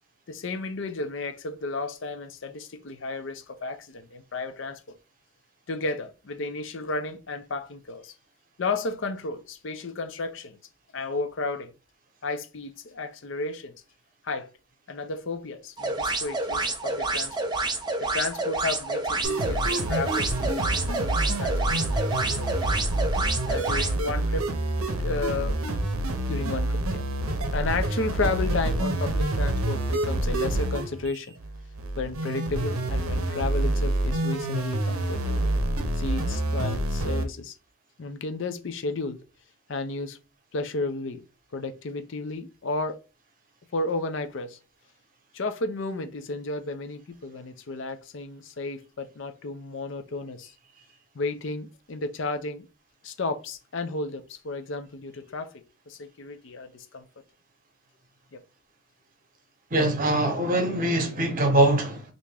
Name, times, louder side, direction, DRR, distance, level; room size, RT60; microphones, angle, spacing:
voice 1, 0.3-5.0 5.7-8.1 8.6-10.6 10.9-11.7 12.2-13.7 14.2-14.5 14.9-17.5 18.0-22.5 23.5-24.5 25.0-25.6 26.3-27.0 27.5-31.3 32.0-35.5 36.0-37.6 38.0-39.2 39.7-40.2 40.5-41.2 41.5-43.0 43.7-44.6 45.3-50.5 51.1-52.7 53.0-57.1 58.3-58.4, left 3 dB, 60° left, 0.5 m, -33 dB
sound 1, 15.8-23.9, right 2 dB, 20° right, 0.4 m, -29 dB
sound 2, 19.2-37.2, right 1 dB, 75° right, 0.6 m, -27 dB
voice 2, 59.7-62.0, right 1 dB, 40° right, 0.8 m, -22 dB
3.4 x 2.6 x 3.3 m
head